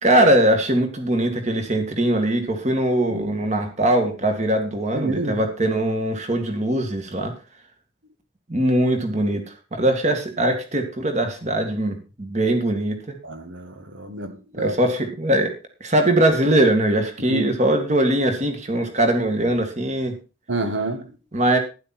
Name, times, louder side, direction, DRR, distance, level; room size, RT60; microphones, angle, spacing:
voice 1, 0.0-7.3 8.5-9.4 9.8-13.1 14.6-15.5 15.8-20.2 21.3-21.6, right 1 dB, 35° right, 2.2 m, -21 dB
voice 2, 3.1-3.4 4.9-5.4 13.2-14.7 17.3-17.5 20.5-21.2, right 2 dB, 80° right, 1.8 m, -28 dB
12.0 x 10.5 x 4.4 m
head